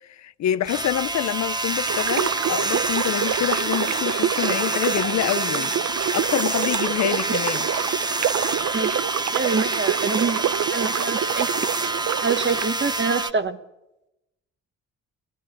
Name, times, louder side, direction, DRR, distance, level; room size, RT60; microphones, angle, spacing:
voice 1, 0.1-5.7 6.1-7.7, left 12 dB, 65° left, 0.7 m, -26 dB
sound 1, 0.7-13.3, right 2 dB, 15° right, 0.9 m, -27 dB
sound 2, 1.9-12.7, right 11 dB, 65° right, 0.7 m, -27 dB
voice 2, 9.3-10.4 10.7-11.7 12.2-13.6, right 4 dB, 35° right, 1.5 m, -26 dB
25.0 x 16.0 x 8.4 m
cardioid pair, 90°, 30 cm